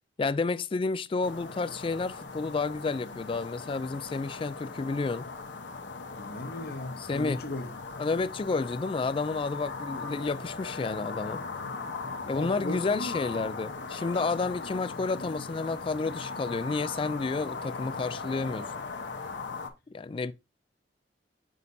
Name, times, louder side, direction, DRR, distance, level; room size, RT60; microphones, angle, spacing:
voice 1, 0.2-5.3 7.0-7.4 8.0-11.4 12.3-18.7 19.9-20.3, left 4 dB, 30° left, 0.3 m, -30 dB
sound 1, 1.2-19.7, left 4 dB, 90° left, 0.9 m, -39 dB
voice 2, 6.1-7.8 12.3-13.5, left 1 dB, 55° left, 0.9 m, -37 dB
6.3 x 5.5 x 2.7 m
head